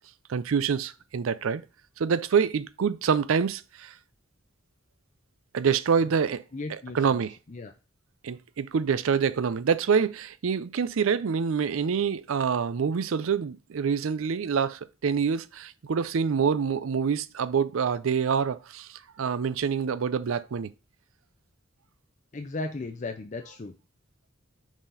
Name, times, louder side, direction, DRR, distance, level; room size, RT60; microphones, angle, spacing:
voice 1, 0.3-1.6 2.0-3.9 5.5-6.4 6.7-7.4 8.2-20.7, right 6 dB, 80° right, 0.4 m, -26 dB
voice 2, 6.5-7.2 7.5-7.7 22.3-23.7, left 3 dB, 35° left, 0.5 m, -36 dB
6.2 x 4.1 x 3.9 m
head